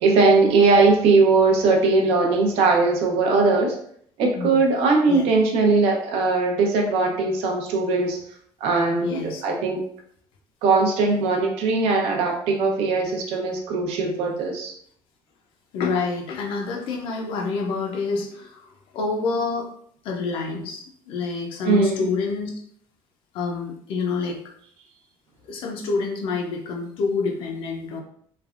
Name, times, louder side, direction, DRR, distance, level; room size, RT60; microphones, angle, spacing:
voice 1, 0.0-3.7 4.2-8.2 8.6-9.8 10.6-14.7 21.6-22.1, right 3 dB, 75° right, 1 dB, 0.7 m, -20 dB
voice 2, 9.0-9.4 15.7-19.7 20.0-22.5 23.3-24.4 25.4-28.0, left 4 dB, 60° left, 0 dB, 0.5 m, -27 dB
3.2 x 2.2 x 2.4 m, 0.64 s
cardioid pair, 170°, 10 cm